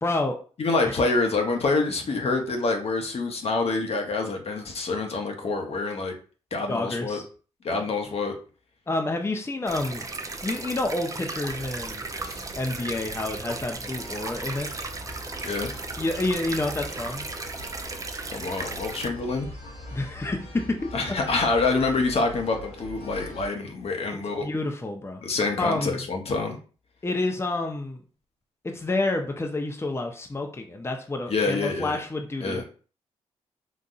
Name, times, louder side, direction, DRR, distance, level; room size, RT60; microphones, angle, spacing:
voice 1, 0.0-0.4 0.8-0.9 6.7-7.2 7.7-7.8 8.9-10.1 10.4-12.0 12.5-14.7 16.0-17.3 19.9-20.9 21.3-21.4 24.4-25.2 25.6-26.1 27.0-28.0 28.6-32.6, left 2 dB, 20° left, 3 dB, 0.6 m, -29 dB
voice 2, 0.6-6.1 6.5-7.2 7.6-8.4 15.4-15.7 18.2-19.5 20.9-24.5 25.2-26.6 31.3-32.0 32.4-32.6, left 3 dB, 50° left, 3 dB, 0.8 m, -26 dB
sound 1, 9.7-19.1, right 3 dB, 25° right, 0.5 m, -36 dB
sound 2, 11.5-23.5, equal, 80° left, 1.7 m, -42 dB
3.9 x 2.6 x 2.4 m, 0.38 s
supercardioid pair, 50°, 13 cm